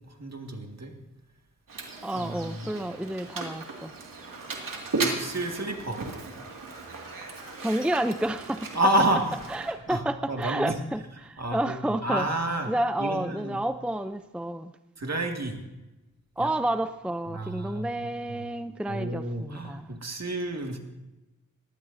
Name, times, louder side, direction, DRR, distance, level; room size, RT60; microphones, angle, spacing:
voice 1, 0.1-0.9 2.1-2.7 5.0-6.0 8.7-9.2 9.9-10.0 10.3-10.8 11.4-12.7 13.0-13.6 15.0-15.6 16.4-16.5 17.3-18.5 18.9-20.8, right 1 dB, 55° right, 2 dB, 2.1 m, -30 dB
Mechanisms, 1.7-9.7, right 3 dB, 90° right, 2.3 m, -36 dB
voice 2, 2.0-3.9 7.6-8.7 9.5-12.3 12.7-14.7 16.4-20.0, right 1 dB, 5° right, 10 dB, 0.5 m, -30 dB
20.5 x 16.0 x 2.7 m, 1.0 s
wide cardioid pair, 65°, 32 cm